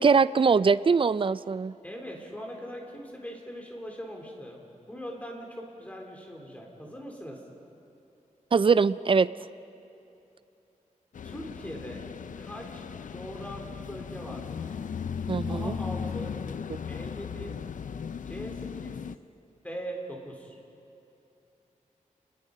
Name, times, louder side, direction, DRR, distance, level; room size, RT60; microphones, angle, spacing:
voice 1, 0.0-1.7 8.5-9.3 15.3-15.7 16.7-16.8, right 5 dB, 40° right, 16 dB, 0.5 m, -22 dB
voice 2, 1.8-4.6 4.9-7.4 11.2-12.0 12.4-14.7 15.5-16.4 16.9-17.5 18.2-19.0 19.6-20.5, equal, 10° left, 0 dB, 3.8 m, -41 dB
sound 1, 11.1-19.2, left 6 dB, 75° left, 0.5 m, -36 dB
29.0 x 21.0 x 5.4 m, 2.9 s
wide cardioid pair, 120°, 13 cm